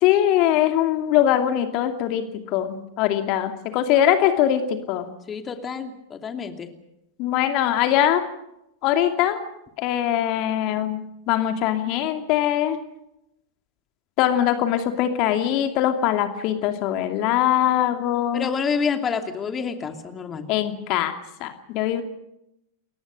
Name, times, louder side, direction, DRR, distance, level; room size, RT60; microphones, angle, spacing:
voice 1, 0.0-5.1 7.2-8.2 8.8-9.4 9.8-11.0 11.3-12.8 14.2-18.5 20.5-22.0, left 11 dB, 40° left, 7 dB, 2.6 m, -22 dB
voice 2, 5.3-6.7 18.3-20.5, left 6 dB, 20° left, 7 dB, 2.8 m, -28 dB
30.0 x 23.0 x 5.3 m, 0.83 s
figure-of-eight pair, 90°, 0 cm